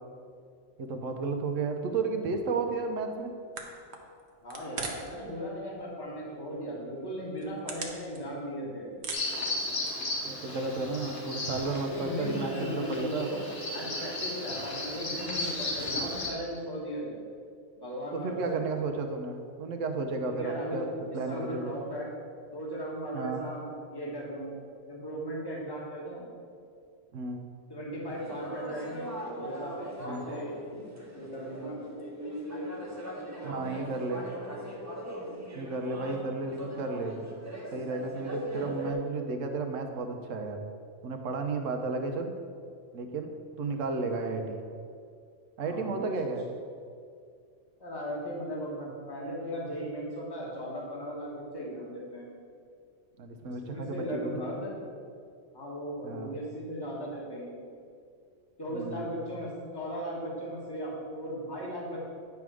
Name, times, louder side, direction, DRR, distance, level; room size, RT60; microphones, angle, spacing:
voice 1, 0.8-3.3 10.2-13.3 18.1-20.9 21.1-21.8 23.1-23.4 27.1-27.5 30.0-30.3 33.4-34.2 35.5-37.2 37.7-40.6 41.0-42.3 42.9-43.3 43.6-44.6 45.6-46.5 53.2-54.6 56.0-56.4 58.7-59.1, right 3 dB, 85° right, 5 dB, 1.2 m, -33 dB
sound 1, 3.2-3.3 3.5-5.2 5.5-6.1 6.5-6.6 7.2-8.6 8.9-10.1, right 4 dB, 60° right, 1.1 m, -40 dB
voice 2, 4.4-8.9 11.9-13.4 13.7-17.2 17.8-18.6 20.2-22.1 22.5-24.5 24.9-26.3 27.7-29.8 30.0-30.8 31.1-31.7 45.6-46.3 47.8-52.3 53.4-54.7 55.5-57.6 58.6-62.0, equal, 20° left, -4 dB, 1.5 m, -37 dB
Bird vocalization bird call bird song, 9.1-16.3, left 2 dB, 65° left, 1.5 m, -35 dB
sound 2, 28.1-38.9, equal, 15° right, 1.0 m, -40 dB
9.2 x 3.6 x 6.2 m, 2.2 s
omnidirectional pair, 1.3 m